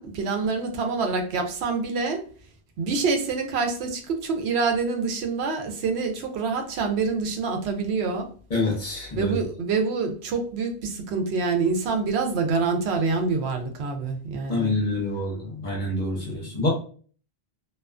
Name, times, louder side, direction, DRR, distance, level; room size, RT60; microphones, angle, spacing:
voice 1, 0.0-2.2 2.8-8.3 9.1-14.7 16.2-16.3, right 4 dB, 80° right, 4 dB, 0.8 m, -26 dB
voice 2, 8.5-9.3 14.5-16.7, left 2 dB, 50° left, -2 dB, 0.8 m, -27 dB
2.3 x 2.2 x 2.3 m, 0.42 s
omnidirectional pair, 1.1 m